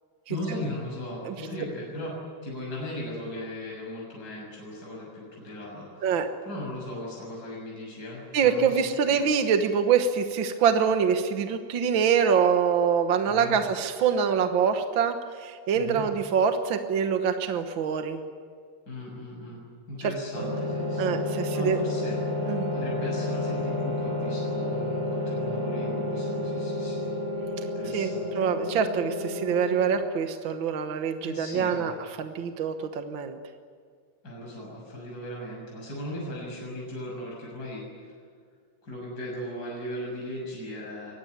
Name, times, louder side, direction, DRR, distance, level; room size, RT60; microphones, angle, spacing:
voice 1, 0.3-2.1 2.4-6.1 6.4-9.3 13.2-13.6 15.7-16.0 18.9-19.6 19.9-27.1 27.8-28.5 31.2-31.9 34.2-38.1 38.8-41.1, left 1 dB, 30° left, -3 dB, 7.3 m, -38 dB
voice 2, 8.3-18.2 21.0-21.8 22.5-22.7 27.9-33.4, right 7 dB, 55° right, 6 dB, 1.4 m, -25 dB
sound 1, 20.3-30.0, left 2 dB, 10° right, 1.8 m, -30 dB
24.0 x 19.5 x 9.5 m, 2.1 s
omnidirectional pair, 3.6 m